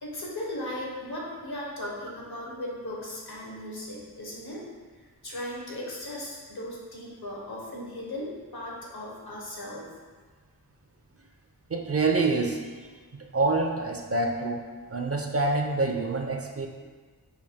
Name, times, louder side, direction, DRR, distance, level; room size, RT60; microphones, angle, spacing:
voice 1, 0.0-4.7 5.2-9.9, left 1 dB, 75° left, -3 dB, 1.0 m, -37 dB
voice 2, 11.7-12.7 13.3-16.7, right 3 dB, 40° right, 3 dB, 0.4 m, -26 dB
5.4 x 2.2 x 3.5 m, 1.5 s
wide cardioid pair, 45°, 39 cm